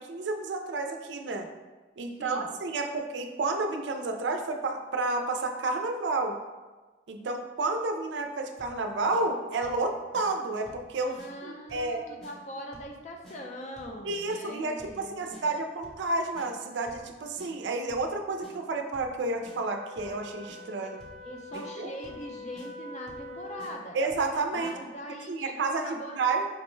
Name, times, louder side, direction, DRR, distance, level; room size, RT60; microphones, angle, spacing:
voice 1, 0.0-1.5 2.0-6.4 7.1-11.2 11.4-12.0 14.0-21.0 21.5-21.9 23.9-24.8 25.3-26.5, right 3 dB, 70° right, 4 dB, 0.4 m, -31 dB
voice 2, 2.2-2.6 11.1-15.4 20.8-20.9 21.2-24.0 24.5-26.2, equal, 40° left, 2 dB, 0.5 m, -42 dB
sound 1, 8.6-8.8 9.1-9.2 9.6-9.8 10.1-10.3 10.7-10.9 11.2-11.3 11.7-11.9 12.2-12.3 12.7-12.9 13.2-13.4 13.8-14.0 14.3-14.4 14.8-15.0 15.3-15.4 15.8-16.1 16.3-16.5 16.9-17.1 17.4-17.5 17.9-18.1 18.4-18.5 18.9-19.2 19.5-19.6 20.0-20.2 20.5-20.6 21.0-21.2 21.5-21.6 22.0-22.3 22.6-22.7 23.1-23.3 23.6-23.7 24.1-24.3 24.6-24.8, equal, 5° left, 0.8 m, -51 dB
Wind instrument woodwind instrument, 19.3-23.9, left 2 dB, 65° left, 0.9 m, -44 dB
5.2 x 2.1 x 3.1 m, 1.3 s
head